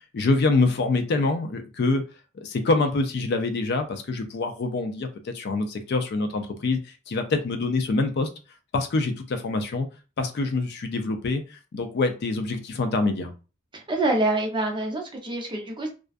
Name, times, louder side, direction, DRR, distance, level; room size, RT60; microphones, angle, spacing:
voice 1, 0.1-2.0 2.4-8.3 8.7-9.9 10.2-13.3, left 3 dB, 55° left, 7 dB, 0.4 m, -25 dB
voice 2, 13.7-15.9, right 2 dB, 25° right, 2 dB, 0.6 m, -26 dB
2.4 x 2.2 x 2.4 m, 0.32 s
head